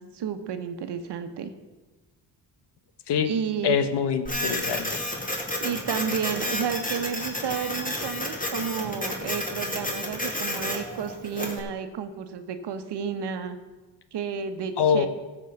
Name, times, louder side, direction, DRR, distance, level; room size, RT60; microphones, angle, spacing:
voice 1, 0.0-1.5 3.2-3.8 5.6-13.6 14.1-15.1, right 7 dB, 65° right, 9 dB, 1.2 m, -31 dB
voice 2, 3.6-5.0 14.8-15.1, left 7 dB, 65° left, 10 dB, 1.2 m, -24 dB
Printer, 4.3-11.6, left 1 dB, 20° left, 2.5 m, -31 dB
14.5 x 4.9 x 7.8 m, 1.2 s
cardioid pair, 85°, 44 cm